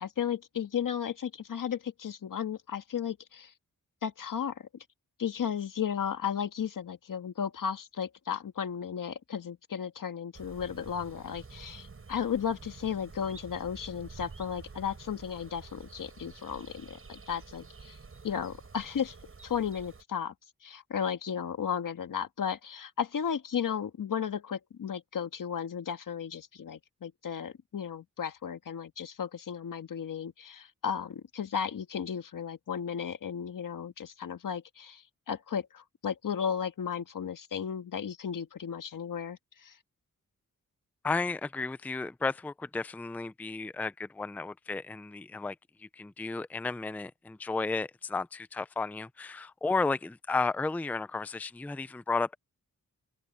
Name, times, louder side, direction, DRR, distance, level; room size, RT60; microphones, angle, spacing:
voice 1, 0.0-3.5 4.0-4.9 5.2-18.0 18.2-19.2 19.4-20.3 20.6-39.8, left 7 dB, 75° left, 1.6 m, -34 dB
sound 1, 10.3-20.0, right 4 dB, 40° right, 6.7 m, -49 dB
voice 2, 41.0-52.4, left 3 dB, 5° left, 0.4 m, -33 dB
open air
wide cardioid pair, 130°, 32 cm